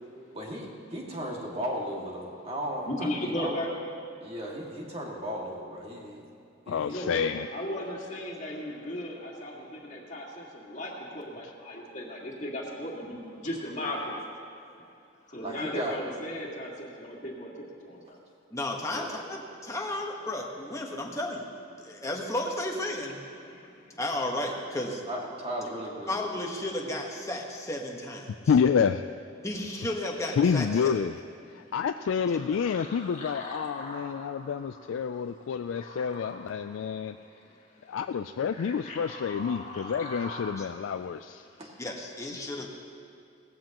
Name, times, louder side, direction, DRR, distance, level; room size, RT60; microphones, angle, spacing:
voice 1, 0.3-3.5 4.2-6.2 6.7-7.3 15.4-16.0 18.9-19.1 25.1-26.2 41.6-41.7, equal, 30° right, -2 dB, 2.1 m, -36 dB
voice 2, 2.9-3.7 6.9-7.1 7.5-14.3 15.3-17.5 17.8-18.2 23.4-24.0 32.3-34.6 35.7-38.0 38.5-40.5 41.5-41.7, left 1 dB, 40° left, -2 dB, 2.1 m, -37 dB
voice 3, 6.7-7.5 28.5-29.0 30.3-31.2 31.5-37.2 37.9-41.4, left 6 dB, 75° left, 8 dB, 0.3 m, -28 dB
voice 4, 18.5-21.4 21.8-23.2 24.0-25.0 26.1-28.3 29.4-30.9 32.3-32.4 40.6-40.7 41.8-42.7, left 1 dB, 15° left, 0 dB, 1.3 m, -33 dB
18.5 x 15.0 x 3.0 m, 2.6 s
head